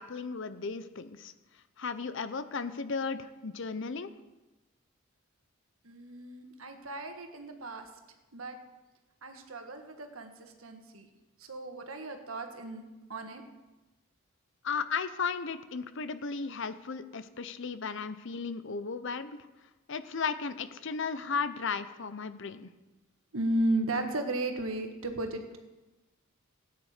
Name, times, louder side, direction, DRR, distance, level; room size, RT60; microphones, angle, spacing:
voice 1, 0.0-1.3 1.8-4.1 14.6-19.4 19.9-22.7, left 5 dB, 60° left, 12 dB, 0.7 m, -35 dB
voice 2, 5.8-7.9 8.3-8.6 9.2-11.1 11.4-12.8 13.1-13.4 23.3-25.4, right 1 dB, 80° right, 5 dB, 1.6 m, -34 dB
17.0 x 9.3 x 5.0 m, 1.1 s
head